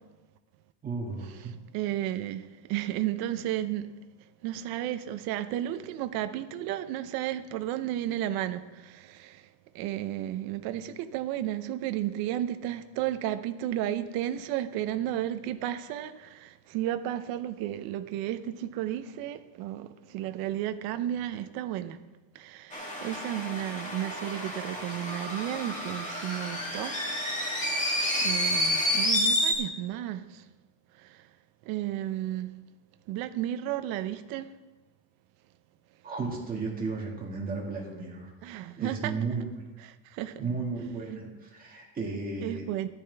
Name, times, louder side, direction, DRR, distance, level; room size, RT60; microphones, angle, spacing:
voice 1, 0.8-1.6 36.0-38.3 38.8-39.7 40.4-42.9, right 4 dB, 20° right, 2.0 m, -34 dB
voice 2, 1.7-2.4 2.7-3.9 4.4-9.4 9.7-22.0 22.3-27.0 27.4-27.8 28.2-30.4 31.0-31.2 31.7-32.5 33.1-34.5 38.4-39.1 39.8-40.4 42.4-42.9, right 12 dB, 50° right, 0.7 m, -33 dB
sound 1, 22.7-29.5, left 1 dB, 15° left, 1.5 m, -29 dB
13.5 x 11.0 x 3.4 m
cardioid pair, 175°, 47 cm